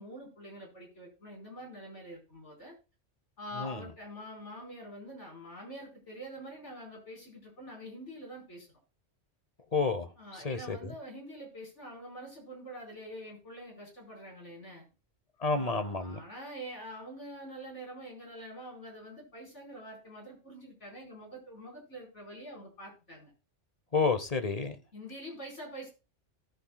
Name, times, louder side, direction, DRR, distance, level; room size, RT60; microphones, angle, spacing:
voice 1, 0.0-2.7 3.4-8.7 10.2-14.8 15.4-23.3 24.9-25.9, equal, 75° left, 5.0 m, -45 dB
voice 2, 9.7-10.9 15.4-16.2 23.9-24.8, left 4 dB, 35° left, 1.0 m, -30 dB
17.5 x 7.3 x 2.3 m
omnidirectional pair, 1.2 m